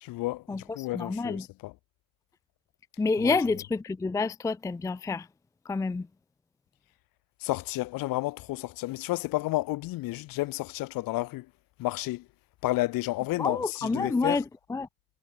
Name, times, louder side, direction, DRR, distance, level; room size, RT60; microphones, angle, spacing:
voice 1, 0.0-1.7 3.2-3.4 7.4-11.5 11.8-12.3 12.6-14.4, left 19 dB, 55° left, 2.1 m, -31 dB
voice 2, 0.9-1.4 3.0-5.3 5.7-6.1 13.4-14.4 14.7-14.9, left 4 dB, 10° left, 0.5 m, -28 dB
figure-of-eight pair, 55°, 40 cm